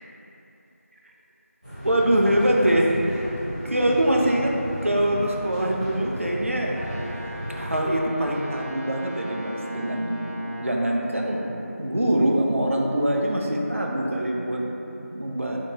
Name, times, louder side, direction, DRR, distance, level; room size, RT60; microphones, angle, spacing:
sound 1, 1.6-7.8, equal, 25° right, 0.7 m, -35 dB
voice 1, 1.8-3.4 3.6-4.5 4.8-6.7 7.6-10.3 10.6-11.5 11.8-15.6, right 1 dB, 55° right, -1 dB, 0.4 m, -23 dB
sound 2, 1.9-13.7, equal, 40° left, 0.5 m, -45 dB
Brass instrument, 6.7-10.8, equal, 85° left, 0.9 m, -39 dB
3.6 x 2.3 x 2.9 m, 2.9 s
figure-of-eight pair, 175°, 8 cm